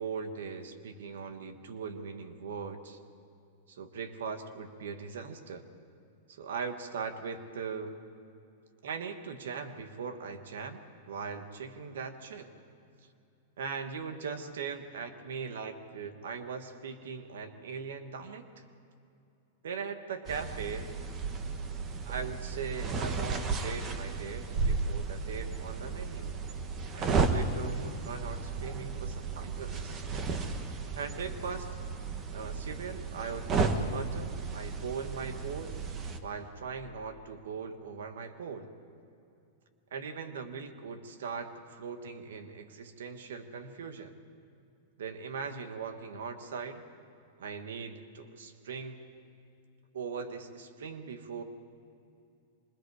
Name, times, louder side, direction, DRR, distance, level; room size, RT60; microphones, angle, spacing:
voice 1, 0.0-3.0 3.7-5.6 6.3-8.0 8.8-10.8 11.1-12.5 13.6-18.6 19.6-20.9 22.0-26.3 26.9-30.2 31.0-31.7 32.3-35.8 36.2-38.7 39.9-44.1 45.0-46.8 47.4-49.0 49.9-51.4, right 5 dB, 85° right, 8 dB, 1.6 m, -40 dB
sound 1, 20.3-36.2, right 4 dB, 30° right, 1.4 m, -34 dB
26.0 x 21.0 x 4.9 m, 2.7 s
hypercardioid pair, 135°, 0 cm